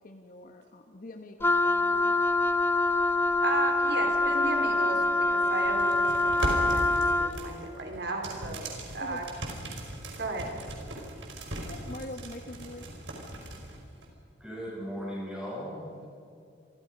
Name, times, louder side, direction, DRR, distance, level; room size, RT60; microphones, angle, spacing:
voice 1, 0.0-2.2 9.0-9.2 11.7-12.9, left 1 dB, 50° left, 5 dB, 1.3 m, -44 dB
Wind instrument woodwind instrument, 1.4-7.4, left 2 dB, 10° left, 0.8 m, -25 dB
voice 2, 3.4-9.3 10.2-10.5, right 2 dB, 65° right, 3 dB, 4.6 m, -35 dB
sound 1, 5.6-14.1, right 1 dB, 80° right, 5.0 m, -38 dB
voice 3, 14.4-16.1, equal, 5° right, -6 dB, 7.8 m, -37 dB
30.0 x 23.5 x 5.4 m, 2.4 s
head